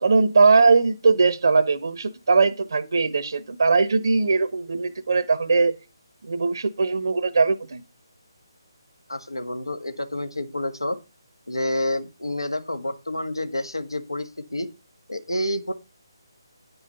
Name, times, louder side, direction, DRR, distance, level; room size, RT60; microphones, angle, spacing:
voice 1, 0.0-5.7 6.2-7.8, right 4 dB, 60° right, 12 dB, 0.7 m, -20 dB
voice 2, 9.1-11.0 11.5-14.7 15.1-15.7, left 1 dB, 85° left, 9 dB, 1.6 m, -29 dB
9.6 x 5.6 x 5.6 m, 0.30 s
figure-of-eight pair, 150°, 2 cm